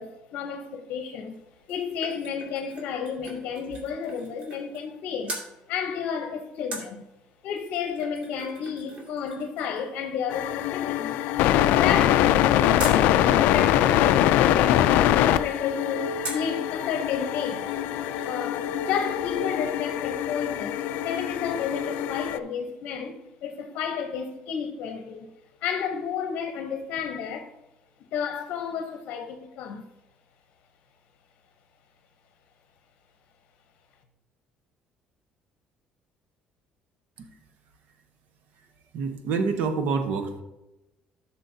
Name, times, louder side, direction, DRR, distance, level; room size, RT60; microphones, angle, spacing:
voice 1, 0.0-1.4 1.7-5.4 5.7-7.0 7.4-11.1 11.7-17.7 18.2-25.3 25.6-27.5 28.1-29.8, left 7 dB, 70° left, 0.8 m, -32 dB
sound 1, 1.3-5.0 5.2-5.5 6.7-13.0 16.2-16.6 17.1-17.2 17.4-18.4 18.6-18.7, right 2 dB, 45° right, 2.3 m, -42 dB
sound 2, 10.3-22.4, left 12 dB, 90° left, 0.3 m, -23 dB
voice 2, 38.9-40.4, right 5 dB, 70° right, 1.0 m, -27 dB
12.5 x 6.2 x 2.7 m
cardioid pair, 145°, 3 cm